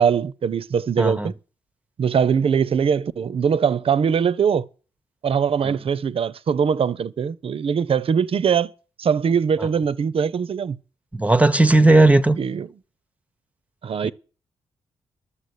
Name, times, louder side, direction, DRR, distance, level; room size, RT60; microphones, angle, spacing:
voice 1, 0.0-1.3 2.0-4.6 5.2-8.7 9.0-10.8 12.4-12.7 13.8-14.1, right 7 dB, 55° right, 0.6 m, -21 dB
voice 2, 1.0-1.3 5.7-5.8 11.1-12.4 14.0-14.1, right 2 dB, 10° right, 0.8 m, -16 dB
11.5 x 7.1 x 8.3 m
cardioid pair, 70°, 12 cm